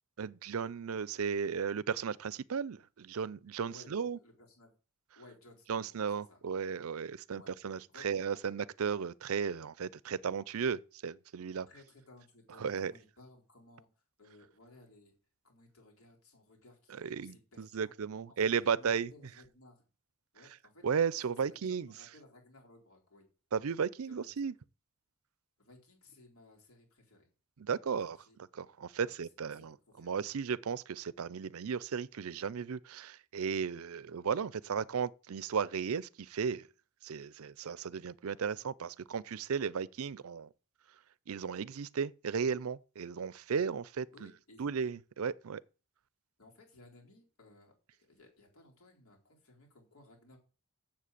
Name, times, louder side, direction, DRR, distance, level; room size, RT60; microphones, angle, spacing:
voice 1, 0.2-4.2 5.7-11.7 12.6-12.9 17.0-19.1 20.8-21.9 23.5-24.5 27.6-28.2 28.5-36.7 37.0-40.5 41.3-44.3 44.6-45.6, right 6 dB, 75° right, 0.5 m, -35 dB
voice 2, 3.7-4.7 5.2-6.4 7.3-7.5 7.9-8.1 11.7-13.9 14.2-15.1 15.4-17.9 18.3-19.9 20.3-20.9 21.2-21.3 21.7-23.3 24.1-24.3 25.6-27.3 28.1-28.4 29.0-30.3 44.1-44.7 46.4-47.7 48.0-50.4, left 2 dB, 75° left, 4.1 m, -59 dB
7.6 x 7.2 x 8.3 m
head